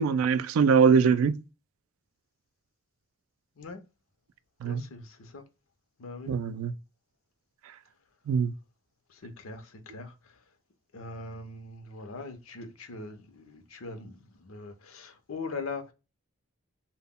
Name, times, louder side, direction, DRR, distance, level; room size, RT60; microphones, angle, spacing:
voice 1, 0.0-1.4 4.6-4.9 6.3-6.7 8.3-8.5, right 6 dB, 85° right, 0.3 m, -22 dB
voice 2, 4.6-5.4 6.0-6.3 9.1-10.1 10.9-15.9, left 3 dB, 85° left, 0.6 m, -41 dB
2.1 x 2.1 x 3.5 m
head